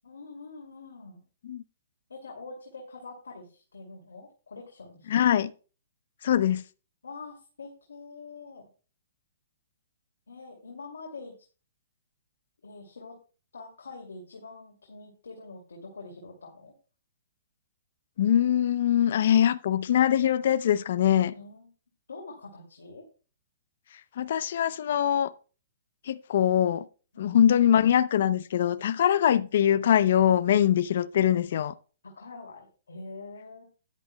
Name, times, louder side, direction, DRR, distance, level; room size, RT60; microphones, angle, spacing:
voice 1, 0.0-1.2 2.1-5.2 7.0-8.7 10.3-11.3 12.6-13.2 13.5-16.7 21.3-21.7 22.1-23.0 27.1-27.4 32.0-33.6, left 3 dB, 85° left, 2.4 m, -45 dB
voice 2, 5.1-5.5 6.2-6.6 18.2-21.3 24.2-25.3 26.1-26.9 27.2-31.7, left 10 dB, 60° left, 0.6 m, -23 dB
13.5 x 10.5 x 2.2 m
hypercardioid pair, 135°, 0 cm